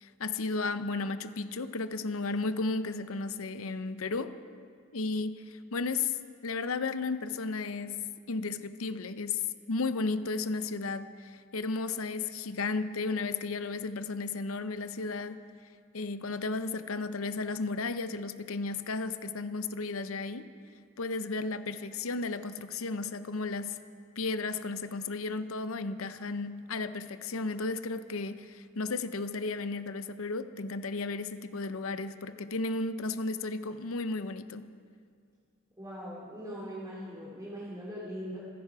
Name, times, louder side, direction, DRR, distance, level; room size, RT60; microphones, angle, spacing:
voice 1, 0.0-4.3 4.9-6.2 6.4-15.4 15.9-20.5 21.0-23.8 24.2-34.7, left 3 dB, 75° left, 11 dB, 0.7 m, -34 dB
voice 2, 35.8-38.4, equal, 15° right, -7 dB, 2.7 m, -40 dB
27.0 x 10.5 x 4.8 m, 2.2 s
head